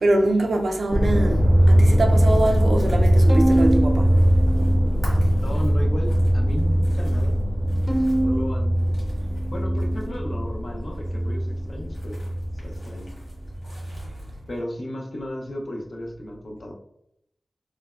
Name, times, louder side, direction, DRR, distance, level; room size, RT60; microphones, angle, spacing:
voice 1, 0.0-4.2 5.1-5.3 13.8-14.3, right 2 dB, 70° right, 0.3 m, -24 dB
sound 1, 0.9-13.0 13.4-14.0, equal, 80° left, 0.9 m, -21 dB
sound 2, 1.2-14.4, equal, 35° left, 1.4 m, -41 dB
Bowed string instrument, 3.3-5.7 6.1-6.9 7.9-10.4, right 1 dB, ahead, 0.6 m, -27 dB
voice 2, 5.4-7.4 8.0-8.8 9.5-12.2 12.6-13.1 14.5-16.7, left 1 dB, 65° left, 0.5 m, -34 dB
3.2 x 2.1 x 2.3 m
wide cardioid pair, 65°, 0 cm